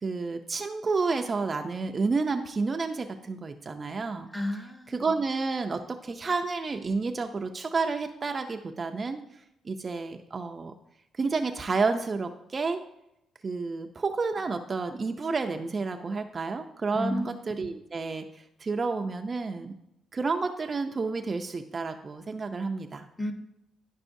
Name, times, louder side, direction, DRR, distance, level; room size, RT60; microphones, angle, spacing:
voice 1, 0.0-4.3 4.9-9.2 9.6-10.7 11.2-12.8 13.4-19.8 20.1-23.1, right 4 dB, 35° right, 5 dB, 0.5 m, -30 dB
voice 2, 4.3-5.1 16.9-17.7 23.2-23.3, left 1 dB, 10° left, 5 dB, 0.9 m, -33 dB
11.0 x 5.4 x 2.6 m, 0.82 s
cardioid pair, 90°, 0 cm